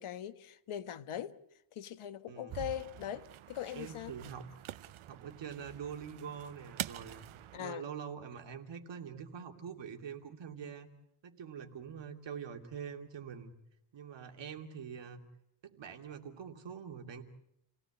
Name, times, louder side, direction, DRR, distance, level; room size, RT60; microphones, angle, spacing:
voice 1, 0.0-1.4 1.7-4.1 7.5-7.9, left 10 dB, 80° left, 1.4 m, -41 dB
sound 1, 2.5-7.6, right 13 dB, 75° right, 0.9 m, -46 dB
voice 2, 3.7-4.5 5.1-7.2 7.6-10.9 11.2-13.5 13.9-15.3 15.6-17.2, right 7 dB, 60° right, 2.8 m, -45 dB
29.5 x 17.5 x 8.4 m
wide cardioid pair, 175°, 49 cm